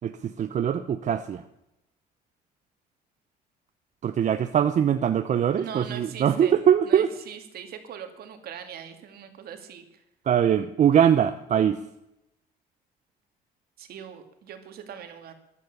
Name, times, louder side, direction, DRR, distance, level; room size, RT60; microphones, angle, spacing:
voice 1, 0.0-1.4 4.0-7.1 10.3-11.8, right 9 dB, 45° right, 9 dB, 0.8 m, -22 dB
voice 2, 5.6-6.5 6.8-10.0 13.8-15.3, right 8 dB, 65° right, 7 dB, 2.4 m, -41 dB
14.5 x 11.5 x 6.9 m, 0.85 s
cardioid pair, 110°, 17 cm